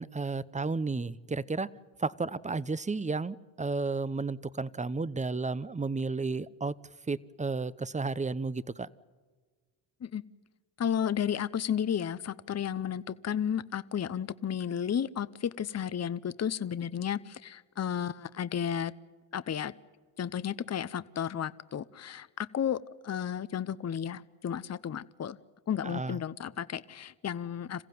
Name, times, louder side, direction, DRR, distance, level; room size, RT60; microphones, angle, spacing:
voice 1, 0.0-1.7 2.0-6.7 7.1-8.9 25.8-26.2, right 3 dB, 15° right, 18 dB, 0.7 m, -32 dB
voice 2, 10.8-18.9 19.3-19.7 20.2-25.4 25.7-27.8, left 8 dB, 35° left, 16 dB, 0.8 m, -33 dB
27.0 x 15.5 x 9.4 m, 1.5 s
cardioid pair, 70°, 45 cm